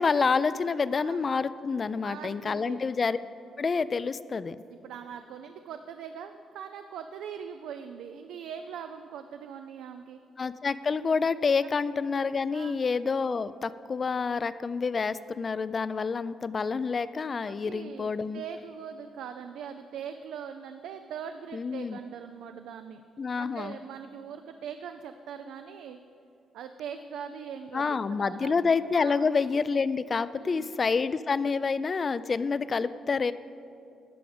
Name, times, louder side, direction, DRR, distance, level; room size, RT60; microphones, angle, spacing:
voice 1, 0.0-3.2 3.6-4.6 10.4-18.4 21.5-22.0 23.2-23.8 27.7-33.3, left 5 dB, 40° left, 15 dB, 0.3 m, -28 dB
voice 2, 2.0-2.8 4.7-10.2 12.5-12.7 17.5-23.0 23.4-26.0 26.5-28.6 29.0-29.3 30.3-30.6, right 7 dB, 85° right, 8 dB, 0.4 m, -41 dB
11.5 x 4.9 x 7.0 m, 2.6 s
cardioid pair, 90°, 0 cm